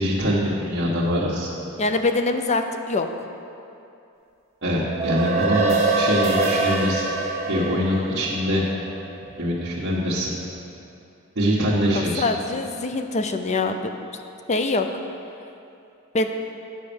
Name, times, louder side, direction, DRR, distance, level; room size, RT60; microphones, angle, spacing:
voice 1, 0.0-1.5 4.6-7.0 7.5-8.7 9.4-10.3 11.3-12.2, equal, 55° right, -9 dB, 1.3 m, -23 dB
voice 2, 1.8-3.1 11.9-13.9 14.5-14.9 16.1-16.3, left 3 dB, 30° left, 6 dB, 0.5 m, -24 dB
sound 1, 4.8-9.4, right 3 dB, 30° right, 1.6 m, -24 dB
9.8 x 5.2 x 7.0 m, 2.6 s
head